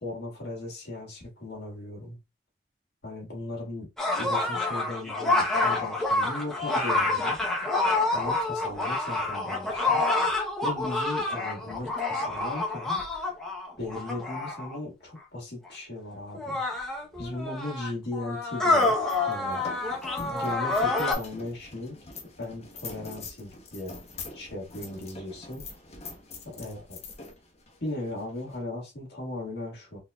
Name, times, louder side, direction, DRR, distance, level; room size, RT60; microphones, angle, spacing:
voice 1, 0.0-2.2 3.0-3.9 4.1-7.4 8.1-10.0 10.6-13.0 13.8-16.6 17.2-19.0 19.3-19.6 20.2-22.0 22.4-24.0 24.3-25.7 26.4-27.0 27.8-30.0, left 2 dB, 65° left, 1.6 m, -37 dB
sound 1, 4.0-14.8 15.7-15.8 16.3-21.1, left 2 dB, 5° left, 0.7 m, -27 dB
sound 2, 18.6-28.6, left 3 dB, 35° left, 0.7 m, -44 dB
4.0 x 2.6 x 2.3 m
head